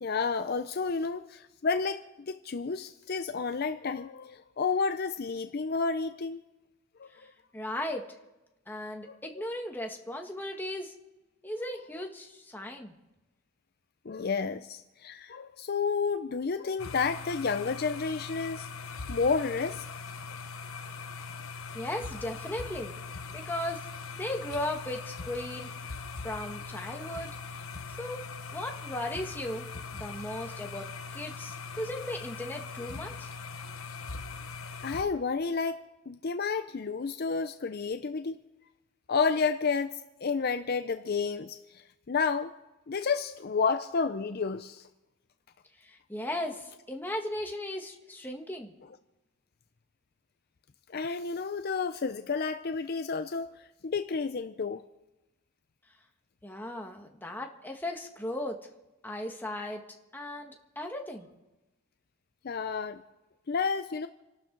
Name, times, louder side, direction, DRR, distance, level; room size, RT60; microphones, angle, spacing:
voice 1, 0.0-6.4 7.0-7.1 9.1-9.5 14.1-18.7 19.1-19.8 34.8-38.4 39.1-42.5 42.9-44.9 50.9-54.8 62.4-63.0 63.5-64.1, left 5 dB, 45° left, 9 dB, 0.5 m, -31 dB
voice 2, 7.5-8.0 8.7-10.9 11.4-12.9 21.7-22.9 23.3-23.8 24.2-25.7 26.2-27.6 27.9-28.3 28.5-29.7 29.9-33.3 45.8-48.7 56.4-58.6 59.0-59.8 60.1-61.3, left 1 dB, 10° left, 2 dB, 1.5 m, -37 dB
sound 1, 16.8-35.0, left 4 dB, 75° left, 1.1 m, -41 dB
28.5 x 12.0 x 3.9 m, 1.0 s
head